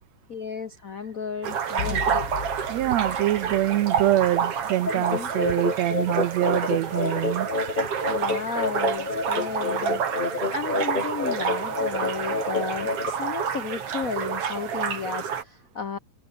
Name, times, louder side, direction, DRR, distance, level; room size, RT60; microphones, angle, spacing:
voice 1, 0.3-2.2 4.9-5.3 8.1-10.0 10.5-16.0, left 6 dB, 80° left, 0.7 m, -33 dB
sound 1, 1.4-15.4, right 7 dB, 55° right, 3.0 m, -29 dB
sound 2, 1.8-4.7, left 7 dB, 40° left, 2.0 m, -37 dB
voice 2, 2.7-7.5, right 14 dB, 75° right, 1.9 m, -24 dB
sound 3, 4.9-13.1, left 3 dB, 20° left, 1.8 m, -29 dB
omnidirectional pair, 3.3 m